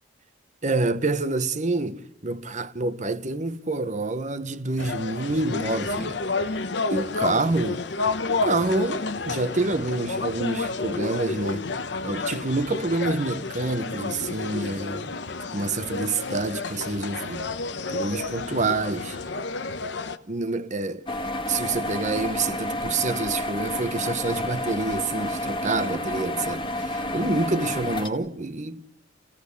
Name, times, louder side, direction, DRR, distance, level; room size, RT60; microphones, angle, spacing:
voice 1, 0.6-6.2 6.9-7.8 8.3-11.7 12.0-15.2 15.5-17.5 17.9-19.2 20.3-21.1 21.5-28.8, right 3 dB, 40° right, 1.0 m, -27 dB
sound 1, 4.8-20.2, left 3 dB, 65° left, 1.0 m, -30 dB
sound 2, 21.1-28.1, left 1 dB, 25° left, 1.7 m, -30 dB
28.5 x 16.0 x 8.3 m
head